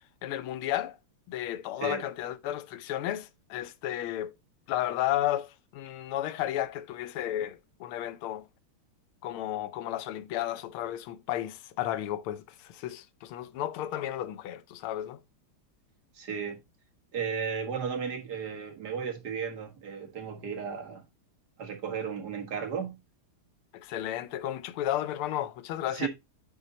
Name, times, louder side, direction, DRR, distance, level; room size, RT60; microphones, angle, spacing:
voice 1, 0.2-1.0 1.3-4.3 4.7-8.4 9.2-15.2 23.7-26.1, left 13 dB, 90° left, 1.6 m, -33 dB
voice 2, 16.1-16.6 17.1-21.0 21.6-23.0 25.9-26.1, right 6 dB, 50° right, 2.0 m, -34 dB
8.8 x 3.8 x 4.0 m
omnidirectional pair, 2.3 m